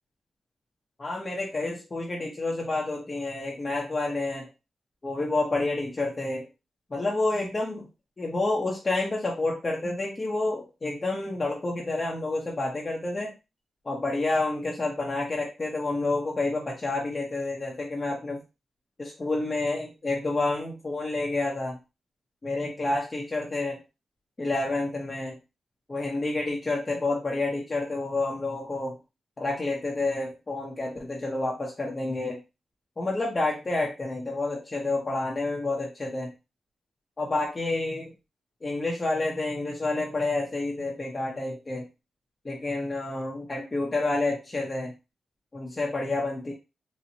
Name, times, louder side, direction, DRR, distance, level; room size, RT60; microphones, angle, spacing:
voice 1, 1.0-4.5 5.0-6.5 6.9-7.9 8.2-13.3 13.8-18.4 19.0-21.8 22.4-23.8 24.4-25.4 25.9-29.0 29.4-32.4 33.0-36.3 37.2-38.1 38.6-41.9 42.4-44.9 45.5-46.5, left 2 dB, 30° left, -2 dB, 0.7 m, -29 dB
4.2 x 2.1 x 2.7 m, 0.27 s
cardioid pair, 100°, 0 cm